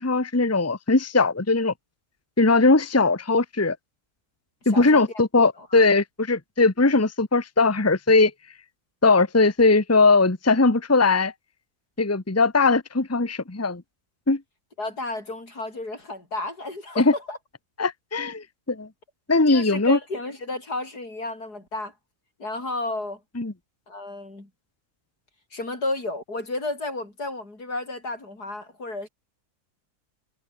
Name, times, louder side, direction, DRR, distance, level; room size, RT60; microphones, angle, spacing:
voice 1, 0.0-1.7 2.4-3.8 4.6-8.3 9.0-11.3 12.0-13.8 14.3-14.4 17.0-17.1 17.8-18.9 19.3-20.0 23.4-23.5, left 3 dB, 10° left, 1.2 m, -20 dB
voice 2, 4.7-5.2 5.6-5.8 14.8-17.4 19.5-21.9 22.4-23.2 23.9-24.5 25.5-29.1, left 2 dB, 80° left, 7.0 m, -32 dB
omnidirectional pair, 1.7 m